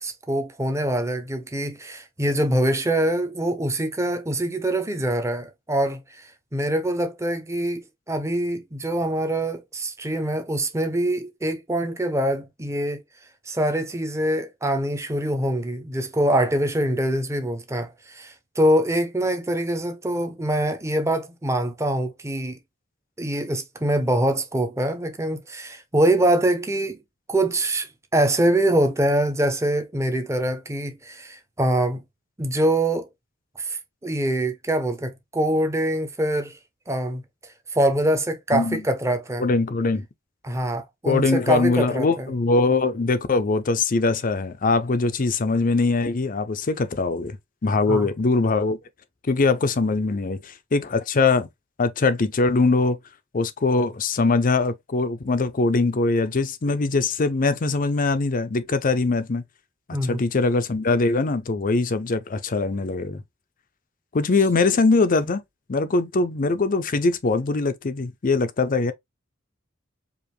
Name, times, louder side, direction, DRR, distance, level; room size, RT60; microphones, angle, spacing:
voice 1, 0.0-13.0 13.5-22.6 23.2-27.0 27.3-32.0 32.4-33.1 33.6-36.6 36.9-37.2 37.7-39.5 40.4-42.3 47.9-48.1 59.9-60.2, right 1 dB, 15° right, 0.8 m, -24 dB
voice 2, 39.4-40.1 41.1-47.4 47.6-48.8 49.3-51.5 51.8-53.0 53.3-59.4 60.0-63.2 64.1-65.4 65.7-68.9, left 3 dB, 40° left, 0.6 m, -22 dB
4.8 x 2.6 x 3.1 m
head